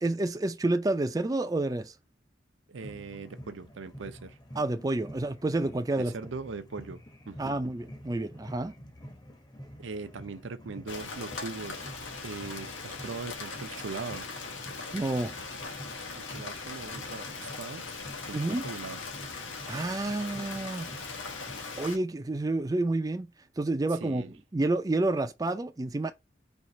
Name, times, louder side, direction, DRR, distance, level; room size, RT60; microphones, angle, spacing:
voice 1, 0.0-1.9 4.6-6.1 7.4-8.7 14.9-15.4 18.3-18.7 19.7-20.9 21.8-23.3 23.6-26.1, right 2 dB, 20° right, 0.4 m, -29 dB
voice 2, 2.7-4.4 6.0-7.6 9.8-11.9 12.2-14.3 16.2-17.8 18.2-18.4 18.6-19.0 24.0-24.3, right 4 dB, 80° right, 0.6 m, -40 dB
sound 1, 2.8-21.9, equal, 20° left, 0.8 m, -49 dB
Rain, 10.9-22.0, left 4 dB, 90° left, 1.2 m, -40 dB
4.5 x 2.4 x 3.9 m
head